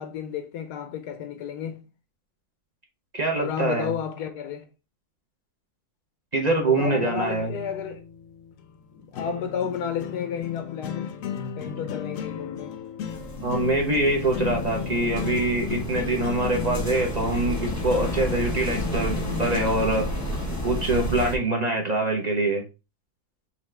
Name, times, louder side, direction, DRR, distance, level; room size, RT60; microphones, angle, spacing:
voice 1, 0.0-1.8 3.3-4.6 6.7-8.0 9.1-11.2 11.6-12.8, left 7 dB, 90° left, 1.3 m, -32 dB
voice 2, 3.1-3.9 6.3-7.5 13.4-20.1 20.6-22.6, right 2 dB, 40° right, 0.6 m, -24 dB
sound 1, 6.8-20.7, left 7 dB, 65° left, 0.9 m, -35 dB
sound 2, 13.1-21.4, right 1 dB, 15° left, 0.9 m, -31 dB
5.7 x 2.4 x 3.2 m
omnidirectional pair, 1.7 m